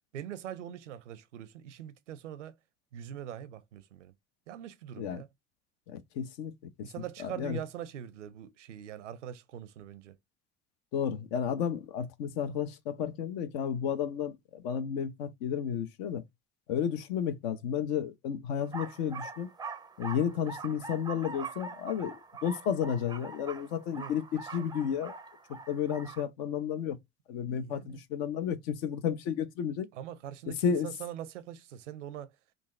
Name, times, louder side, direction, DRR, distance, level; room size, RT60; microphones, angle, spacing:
voice 1, 0.1-2.5 2.9-4.1 4.5-5.3 6.8-10.2 23.9-24.1 27.5-28.0 29.9-32.3, right 10 dB, 85° right, 0.5 m, -43 dB
voice 2, 5.9-6.5 6.8-6.9 7.2-7.6 10.9-16.2 16.7-19.5 20.0-22.2 22.4-25.1 25.7-27.0 27.3-29.9 30.5-30.9, left 8 dB, 65° left, 0.7 m, -32 dB
sound 1, 18.6-26.2, right 4 dB, 10° right, 0.4 m, -43 dB
3.8 x 2.4 x 2.5 m
hypercardioid pair, 65°, 35 cm